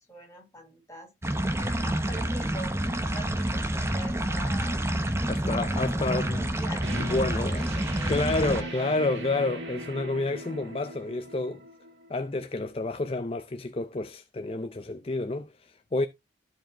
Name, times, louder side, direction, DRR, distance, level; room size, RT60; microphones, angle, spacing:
voice 1, 0.0-8.1 8.6-8.9 9.2-9.5, right 1 dB, 15° left, 3.8 m, -45 dB
sound 1, 1.2-8.6, right 1 dB, 15° right, 0.7 m, -28 dB
voice 2, 5.3-6.5 7.0-7.7 8.1-11.6 12.1-16.1, left 2 dB, 30° left, 0.4 m, -29 dB
sound 2, 6.8-12.3, right 1 dB, 70° right, 2.5 m, -39 dB
13.5 x 5.0 x 2.9 m
head